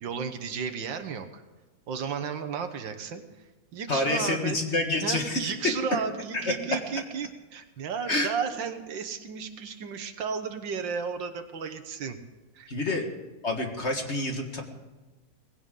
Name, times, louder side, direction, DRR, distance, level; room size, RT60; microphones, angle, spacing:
voice 1, 0.0-1.4 1.9-3.2 3.7-4.6 5.0-12.2 12.6-13.0, right 6 dB, 75° right, 8 dB, 1.8 m, -33 dB
voice 2, 3.9-5.5 6.3-6.5 8.1-8.3 12.7-13.0 13.4-14.6, left 2 dB, 35° left, 3 dB, 1.8 m, -28 dB
19.5 x 17.0 x 3.8 m, 1.2 s
omnidirectional pair, 2.1 m